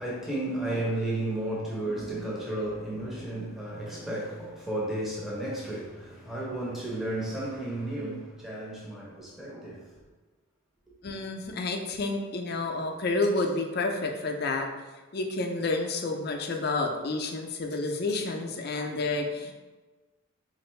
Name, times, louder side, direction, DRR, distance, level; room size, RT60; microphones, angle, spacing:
voice 1, 0.0-9.9, right 1 dB, ahead, 0.6 m, -33 dB
voice 2, 11.0-14.7 15.1-19.5, left 3 dB, 50° left, 0.4 m, -30 dB
4.2 x 2.5 x 3.1 m
head